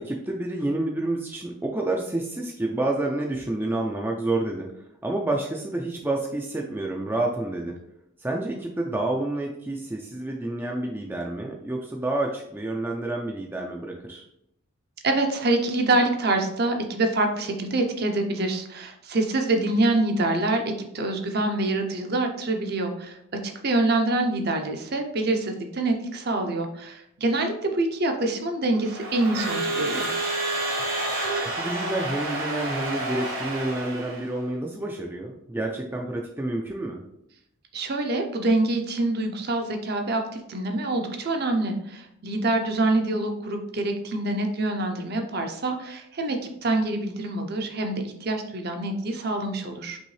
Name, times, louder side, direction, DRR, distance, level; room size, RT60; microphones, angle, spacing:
voice 1, 0.0-4.7 5.0-7.8 8.2-14.2 31.0-31.1 31.6-37.0, right 2 dB, 10° right, 0 dB, 0.4 m, -29 dB
voice 2, 15.0-20.6 20.9-23.2 23.4-30.1 37.7-50.0, right 2 dB, 50° right, 4 dB, 0.6 m, -25 dB
Crowd / Alarm, 28.8-34.3, right 2 dB, 70° right, 1.4 m, -29 dB
5.4 x 3.1 x 3.2 m, 0.77 s
head